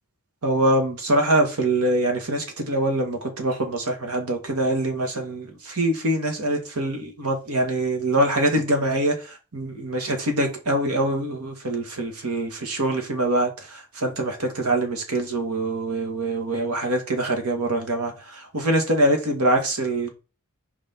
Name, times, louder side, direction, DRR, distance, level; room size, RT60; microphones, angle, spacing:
voice 1, 0.4-20.1, right 1 dB, 90° right, 1.8 m, -24 dB
5.8 x 4.9 x 4.4 m
head